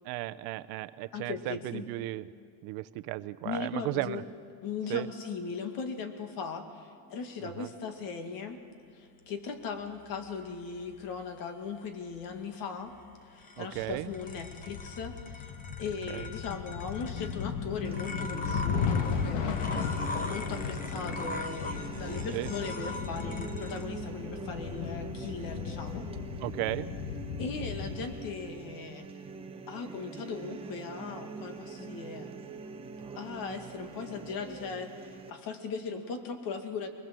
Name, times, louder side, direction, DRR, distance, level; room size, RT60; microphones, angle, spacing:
voice 1, 0.0-2.2 2.6-4.2 4.9-5.1 7.4-7.7 13.6-14.1 16.1-16.3 22.3-22.5 26.4-26.9, right 18 dB, 65° right, 14 dB, 0.7 m, -35 dB
voice 2, 1.1-1.8 3.4-4.2 4.6-8.6 8.9-12.9 13.3-15.5 15.8-26.1 27.4-29.1 29.7-32.3 33.2-36.9, left 5 dB, 55° left, 7 dB, 2.2 m, -38 dB
sound 1, 9.2-23.8, left 2 dB, 20° left, 0.9 m, -43 dB
sound 2, 13.7-28.2, left 6 dB, 75° left, 1.6 m, -36 dB
sound 3, 17.9-35.3, right 5 dB, 15° right, 0.9 m, -44 dB
23.0 x 20.0 x 7.6 m, 2.4 s
cardioid pair, 170°, 41 cm